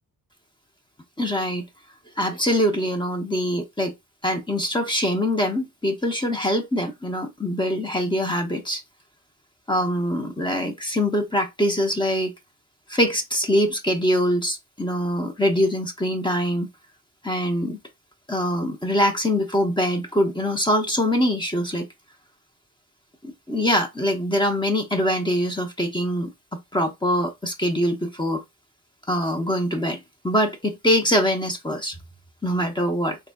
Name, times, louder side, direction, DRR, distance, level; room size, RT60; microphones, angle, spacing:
voice 1, 1.2-1.6 2.2-3.9 4.2-8.8 9.7-12.3 12.9-16.7 17.2-17.8 18.3-21.9 23.2-28.4 29.1-31.9 32.4-33.2, equal, 10° left, 0.9 m, -23 dB
3.9 x 3.7 x 2.3 m
wide cardioid pair, 110°, 38 cm